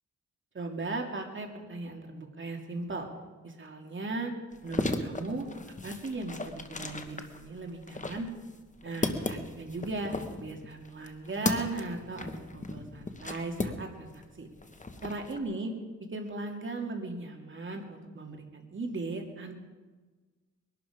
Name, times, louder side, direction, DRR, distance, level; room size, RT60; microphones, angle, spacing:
voice 1, 0.5-3.1 3.4-4.3 4.6-5.5 5.8-8.3 8.8-14.5 15.0-15.7 16.1-19.5, right 2 dB, 40° right, 2 dB, 2.6 m, -37 dB
sound 1, 4.5-14.2 14.5-15.4, left 2 dB, 25° left, 1.3 m, -36 dB
21.5 x 12.0 x 5.1 m, 1.3 s
cardioid pair, 90°, 30 cm